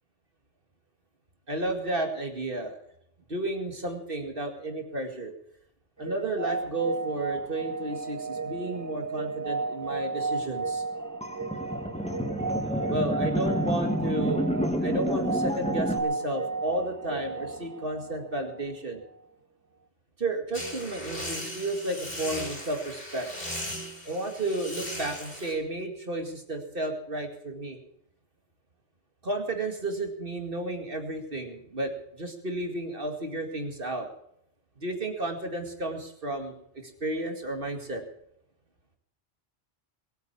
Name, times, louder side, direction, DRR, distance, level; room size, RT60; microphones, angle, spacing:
voice 1, 1.5-2.8 3.3-5.3 6.0-10.8 12.9-14.4 14.8-19.0 20.2-23.3 24.1-27.8 29.2-34.1 34.8-38.0, right 2 dB, 50° right, 4 dB, 2.3 m, -32 dB
sound 1, 6.0-18.8, right 4 dB, 30° right, 0.3 m, -34 dB
sound 2, 11.2-16.0, equal, 5° left, 1.7 m, -29 dB
sound 3, 20.5-25.5, equal, 55° left, 5.3 m, -37 dB
21.0 x 9.3 x 7.1 m, 0.74 s
omnidirectional pair, 1.1 m